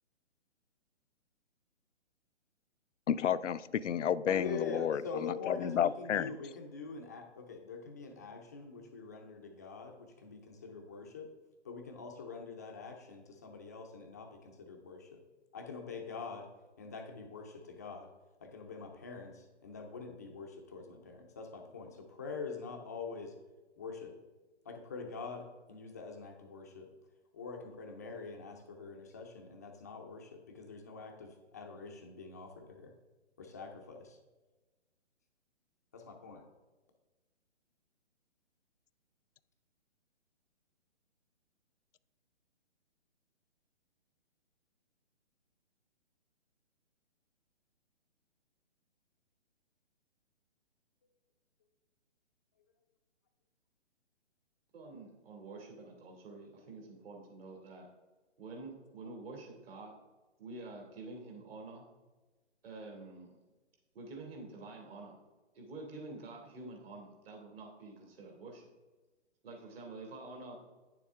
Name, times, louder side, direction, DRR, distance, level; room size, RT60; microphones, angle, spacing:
voice 1, 3.1-6.4, left 9 dB, 85° left, 16 dB, 0.5 m, -31 dB
voice 2, 4.3-11.3 11.6-15.2 15.5-16.5 16.8-18.1 18.4-23.3 23.8-24.1 24.7-26.9 27.3-32.9 33.4-34.2 35.9-36.4, left 4 dB, 15° left, 3 dB, 0.4 m, -45 dB
voice 3, 54.7-57.9 58.4-59.9 60.4-61.9 62.6-63.4 63.9-65.2 65.5-68.6 69.4-70.6, right 3 dB, 55° right, 0 dB, 2.9 m, -48 dB
9.6 x 6.9 x 3.5 m, 1.2 s
hypercardioid pair, 150°, 35 cm